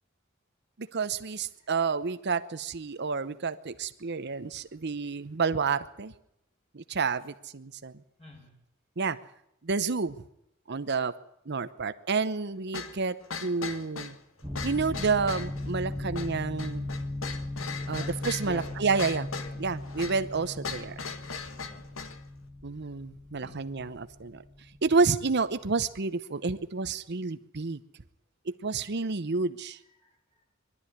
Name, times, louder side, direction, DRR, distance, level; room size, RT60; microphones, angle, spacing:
voice 1, 0.8-6.1 6.7-7.9 9.0-9.2 9.6-10.2 10.7-11.1 11.5-14.2 14.6-16.9 17.9-19.3 19.6-20.9 22.6-24.4 24.8-27.8 28.5-29.8, right 4 dB, 55° right, 12 dB, 0.8 m, -29 dB
voice 2, 8.2-8.6 17.7-18.2 18.4-18.6 19.4-19.6 21.6-21.9 23.4-23.6 24.9-25.1 30.0-30.4, left 1 dB, 25° left, -3 dB, 5.3 m, -48 dB
sound 1, 12.7-22.2, left 5 dB, 85° left, 1.7 m, -39 dB
sound 2, 14.4-25.7, left 1 dB, 15° right, 1.4 m, -38 dB
21.5 x 12.5 x 9.9 m, 0.80 s
head